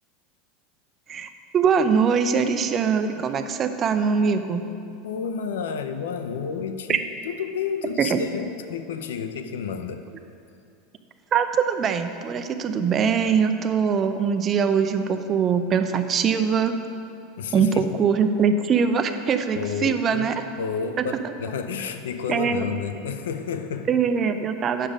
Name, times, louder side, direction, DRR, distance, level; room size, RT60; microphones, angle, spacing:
voice 1, 1.1-4.7 6.9-7.0 8.0-8.2 11.3-16.7 17.5-20.3 21.0-21.1 22.3-22.6 23.9-24.9, right 6 dB, 35° right, 8 dB, 0.6 m, -22 dB
voice 2, 5.0-10.1 17.4-17.9 19.5-20.3 20.6-23.9, left 6 dB, 85° left, 9 dB, 0.6 m, -31 dB
8.9 x 6.5 x 5.0 m, 2.6 s
supercardioid pair, 110°, 0 cm